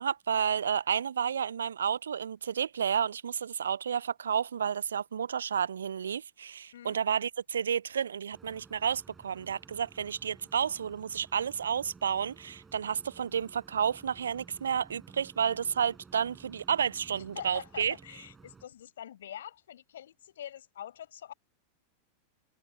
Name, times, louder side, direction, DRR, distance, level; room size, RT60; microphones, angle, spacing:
voice 1, 0.0-17.9, right 7 dB, 70° right, 0.3 m, -31 dB
sound 1, 8.3-18.7, right 5 dB, 15° right, 5.9 m, -55 dB
voice 2, 17.3-21.3, left 11 dB, 60° left, 5.7 m, -45 dB
figure-of-eight pair, 90°, 0 cm